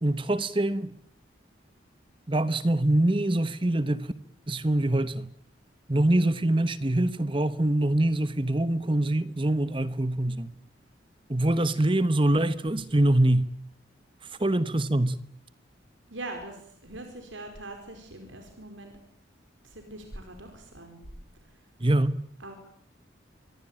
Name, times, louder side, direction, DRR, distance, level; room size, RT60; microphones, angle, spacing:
voice 1, 0.0-0.9 2.3-4.1 4.5-5.3 5.9-10.5 11.3-13.5 14.4-15.1 21.8-22.1, right 1 dB, 25° right, 1.1 m, -24 dB
voice 2, 16.1-18.9 19.6-21.0 22.4-22.5, right 2 dB, 90° right, 4.8 m, -42 dB
26.0 x 22.5 x 8.9 m
head